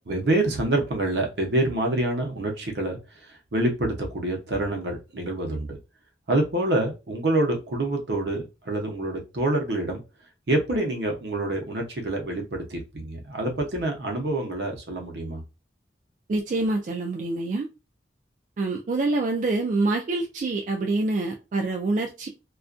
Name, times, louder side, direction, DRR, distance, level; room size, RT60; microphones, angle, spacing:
voice 1, 0.1-5.8 6.3-10.0 10.5-15.4, right 1 dB, 75° right, 0.7 m, -26 dB
voice 2, 16.3-17.7 18.6-22.3, right 2 dB, 45° right, 0.3 m, -26 dB
2.3 x 2.2 x 2.4 m
head